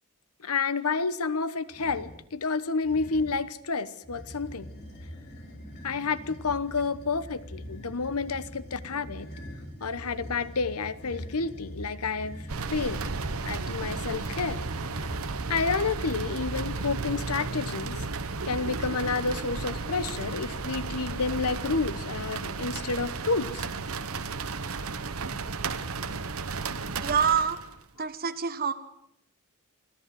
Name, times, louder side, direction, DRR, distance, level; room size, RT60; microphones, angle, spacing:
voice 1, 0.4-4.7 5.8-9.3 9.8-13.0 13.4-14.6 15.5-18.0 18.5-23.7, left 4 dB, 90° left, 15 dB, 1.1 m, -30 dB
sound 1, 1.7-2.2 2.8-3.4 4.0-16.0, equal, 50° left, 4.0 m, -43 dB
sound 2, 12.5-27.8, right 4 dB, 70° right, 1.1 m, -34 dB
voice 2, 27.0-27.6 28.0-28.7, right 7 dB, 45° right, 8 dB, 1.2 m, -26 dB
24.5 x 14.5 x 7.8 m, 0.75 s
head